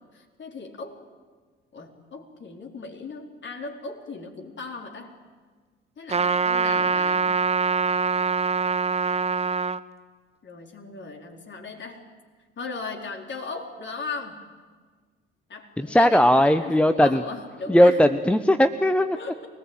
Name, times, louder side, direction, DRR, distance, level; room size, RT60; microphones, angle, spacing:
voice 1, 0.1-1.0 1.7-5.1 6.0-7.3 10.4-12.0 12.6-14.4 15.5-18.1 19.1-19.5, left 4 dB, 40° left, 3 dB, 4.2 m, -37 dB
Trumpet, 6.1-9.8, right 5 dB, 20° right, 0.8 m, -24 dB
voice 2, 15.8-17.2 17.7-19.2, equal, 5° left, 10 dB, 1.0 m, -18 dB
24.0 x 19.5 x 9.1 m, 1.5 s
hypercardioid pair, 60°, 30 cm